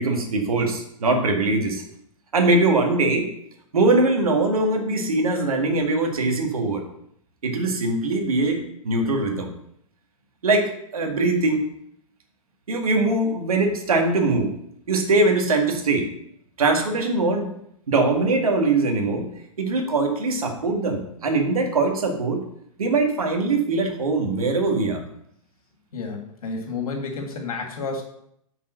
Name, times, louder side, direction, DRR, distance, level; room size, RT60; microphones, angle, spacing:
voice 1, 0.0-1.8 2.3-3.3 3.7-6.9 7.4-9.5 10.4-11.7 12.7-14.5 14.9-16.1 16.6-17.5 17.9-19.3 19.6-22.4 22.8-25.0, right 2 dB, 80° right, 3 dB, 1.9 m, -22 dB
voice 2, 25.9-28.0, left 4 dB, 80° left, 2 dB, 2.3 m, -30 dB
6.5 x 5.5 x 6.4 m, 0.73 s
hypercardioid pair, 115°, 18 cm